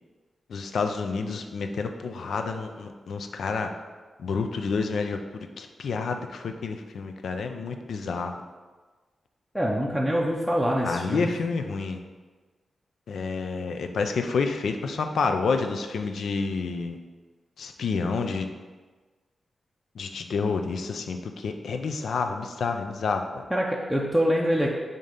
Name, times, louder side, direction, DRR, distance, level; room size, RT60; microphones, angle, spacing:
voice 1, 0.5-3.7 4.2-5.2 5.6-8.3 10.8-12.0 13.1-17.0 17.6-18.5 20.0-23.5, left 4 dB, 80° left, 6 dB, 0.5 m, -29 dB
voice 2, 9.5-11.3 23.5-24.7, equal, ahead, -4 dB, 0.5 m, -25 dB
7.2 x 2.8 x 5.1 m, 1.4 s
wide cardioid pair, 145°, 0 cm